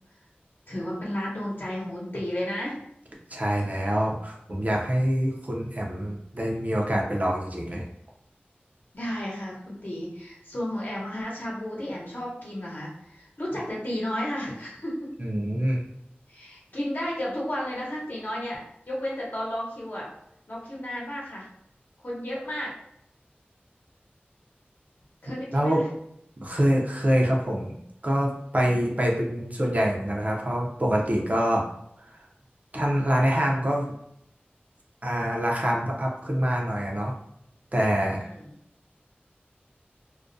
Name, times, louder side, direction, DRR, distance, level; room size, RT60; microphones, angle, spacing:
voice 1, 0.7-2.8 8.9-15.0 16.3-20.1 20.5-21.5 22.0-22.7 25.2-25.8 38.1-38.5, left 1 dB, 55° left, -5 dB, 0.8 m, -33 dB
voice 2, 3.3-7.8 15.2-15.8 25.5-25.8 26.4-27.7 28.0-31.7 32.0-32.3 32.7-33.9 35.0-37.1 37.7-38.3, equal, 40° right, -2 dB, 0.5 m, -25 dB
2.3 x 2.1 x 2.5 m, 0.76 s
wide cardioid pair, 50°, 4 cm